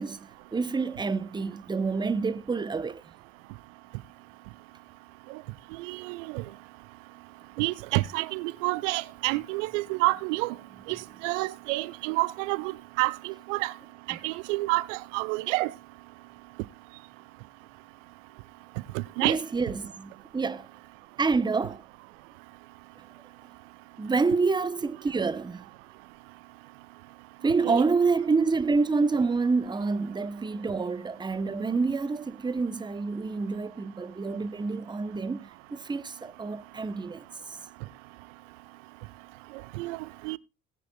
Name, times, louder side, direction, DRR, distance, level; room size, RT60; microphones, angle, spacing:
voice 1, 0.0-3.0 14.1-14.2 19.2-20.7 21.2-21.8 24.0-25.7 27.4-37.6, right 4 dB, 10° right, 0.7 m, -28 dB
voice 2, 5.8-6.4 7.6-10.5 10.9-13.7 14.1-15.7 18.9-19.4 27.6-27.8 39.8-40.0 40.2-40.4, right 22 dB, 65° right, 0.6 m, -29 dB
19.0 x 9.1 x 2.2 m
hypercardioid pair, 60°, 40 cm